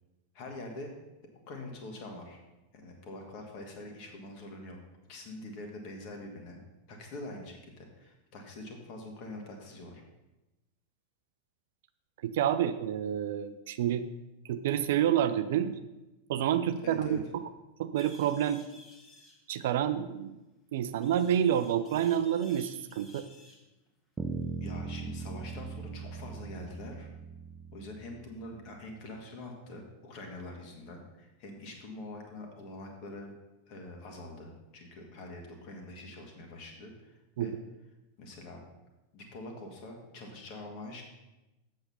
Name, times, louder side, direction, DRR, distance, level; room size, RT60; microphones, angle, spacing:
voice 1, 0.3-0.9 1.5-2.4 2.7-4.8 5.1-6.6 6.9-10.0 16.8-17.2 24.6-27.1 27.7-33.3 33.7-37.1 37.4-37.5 38.2-38.6 39.1-41.0, left 2 dB, 40° left, 2 dB, 2.0 m, -44 dB
voice 2, 12.2-14.1 14.5-15.8 16.3-17.4 17.8-18.6 19.5-20.3 20.7-23.3 37.4-37.6, right 10 dB, 55° right, 11 dB, 0.5 m, -28 dB
sound 1, 17.9-19.4 21.0-23.6, left 2 dB, 25° left, 1.6 m, -55 dB
sound 2, 24.2-28.5, right 4 dB, 10° right, 0.6 m, -39 dB
7.8 x 6.6 x 5.7 m, 1.0 s
figure-of-eight pair, 90°, 0 cm